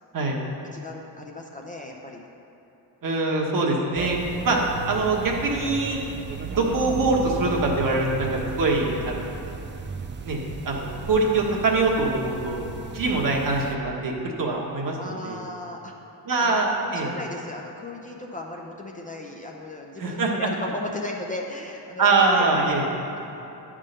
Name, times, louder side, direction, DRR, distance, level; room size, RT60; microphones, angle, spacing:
voice 1, 0.7-2.2 15.0-15.9 16.4-23.2, left 1 dB, 20° left, 0 dB, 0.6 m, -36 dB
voice 2, 3.0-4.2 4.4-4.6 4.8-6.0 6.5-9.3 10.2-10.4 10.6-12.6 12.9-15.4 16.3-17.1 20.0-20.5 22.0-22.9, right 3 dB, 50° right, -1 dB, 1.4 m, -23 dB
sound 1, 4.0-13.8, right 4 dB, 30° right, 0.4 m, -35 dB
9.6 x 3.7 x 6.6 m, 2.9 s
cardioid pair, 110°, 42 cm